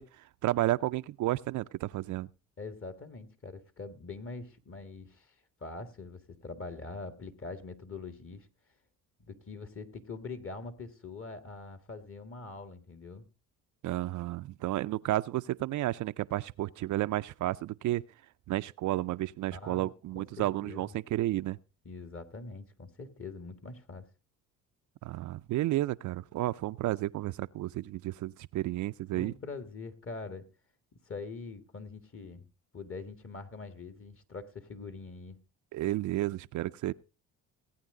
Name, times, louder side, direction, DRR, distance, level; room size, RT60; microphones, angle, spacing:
voice 1, 0.0-2.3 13.8-18.0 18.5-21.6 25.0-29.3 35.7-36.9, right 15 dB, 55° right, 0.5 m, -32 dB
voice 2, 2.6-5.3 5.6-8.5 9.3-13.3 19.5-20.9 21.9-24.1 29.1-30.5 30.9-32.5 32.7-35.4, left 3 dB, 35° left, 1.9 m, -43 dB
18.0 x 9.0 x 3.8 m
supercardioid pair, 70°, 35 cm